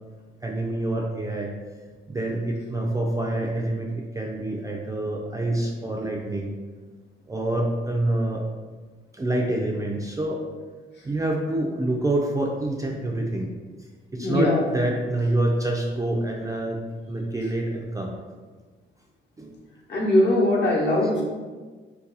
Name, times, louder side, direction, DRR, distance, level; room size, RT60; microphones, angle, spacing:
voice 1, 0.4-1.5 2.1-6.5 7.3-8.5 9.1-10.6 11.0-13.5 13.8-16.8 17.1-18.1 19.4-19.5, right 1 dB, 15° right, -1 dB, 0.3 m, -27 dB
voice 2, 14.2-14.6 19.9-21.2, left 1 dB, 60° left, -3 dB, 0.9 m, -20 dB
2.7 x 2.3 x 3.8 m, 1.4 s
cardioid pair, 90°, 20 cm